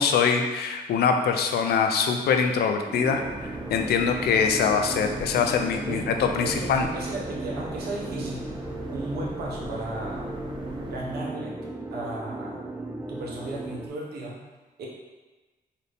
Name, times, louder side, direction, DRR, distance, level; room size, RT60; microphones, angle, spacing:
voice 1, 0.0-3.2 3.7-6.9, left 6 dB, 85° left, 5 dB, 0.4 m, -23 dB
sound 1, 2.9-13.9, right 2 dB, 10° right, 0.3 m, -36 dB
sound 2, 3.2-11.2, right 1 dB, 30° right, 0.7 m, -39 dB
voice 2, 6.4-8.5 8.9-10.3 10.9-11.6 11.9-12.6 13.1-14.4 14.8-14.9, right 2 dB, 90° right, -3 dB, 0.9 m, -35 dB
4.1 x 2.7 x 3.4 m, 1.2 s
cardioid pair, 90°, 16 cm